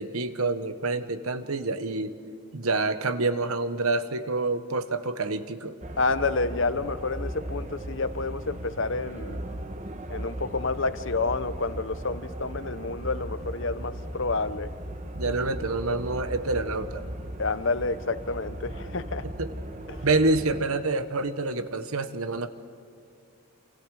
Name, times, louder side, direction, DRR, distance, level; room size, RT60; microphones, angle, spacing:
voice 1, 0.0-2.1 2.5-5.8 15.1-17.0 19.2-19.5 20.0-22.5, right 3 dB, 80° right, 11 dB, 1.3 m, -27 dB
sound 1, 5.8-20.6, right 1 dB, 30° right, 1.3 m, -37 dB
voice 2, 6.0-9.4 10.1-14.7 17.4-19.2, left 3 dB, 55° left, 13 dB, 0.9 m, -29 dB
28.5 x 27.0 x 5.0 m, 2.5 s
head